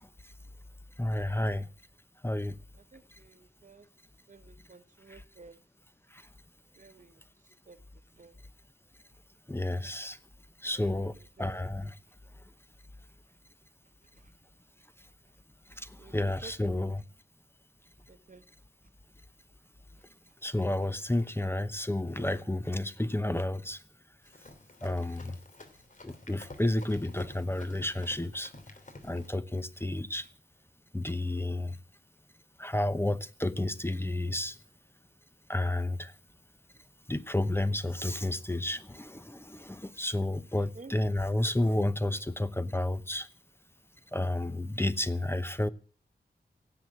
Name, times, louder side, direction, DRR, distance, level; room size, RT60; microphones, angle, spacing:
voice 1, 1.0-1.7 2.2-2.6 6.1-6.2 9.5-10.2 10.6-11.9 15.8-17.0 20.4-23.8 24.8-25.4 26.0-28.5 29.0-30.3 30.9-31.8 32.6-34.6 35.5-36.1 37.1-43.3 44.1-45.7, left 1 dB, 15° left, 0.9 m, -31 dB
voice 2, 2.8-3.9 4.3-5.6 6.8-7.2 7.6-7.8 8.2-8.4 10.7-11.6 14.1-14.3 16.0-16.8 18.1-18.4 25.1-25.2 29.8-29.9 40.5-40.9, right 4 dB, 50° right, 1.2 m, -53 dB
Run, 24.2-29.3, left 2 dB, 50° left, 3.2 m, -50 dB
17.0 x 8.0 x 8.6 m
wide cardioid pair, 75°, 17 cm